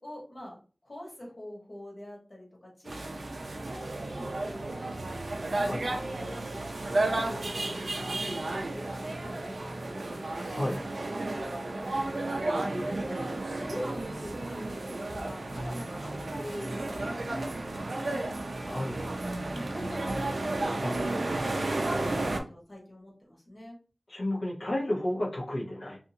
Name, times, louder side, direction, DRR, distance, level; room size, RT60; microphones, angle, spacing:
voice 1, 0.0-5.2 5.5-6.4 6.9-10.9 11.7-12.2 12.5-18.4 19.5-23.8, left 1 dB, 55° left, -4 dB, 1.4 m, -45 dB
sound 1, 2.9-22.4, right 2 dB, 80° right, 0.4 m, -33 dB
voice 2, 18.6-19.0 20.8-20.9 24.1-26.0, left 1 dB, 75° left, -4 dB, 0.9 m, -32 dB
2.7 x 2.5 x 2.7 m, 0.38 s
wide cardioid pair, 65°, 0 cm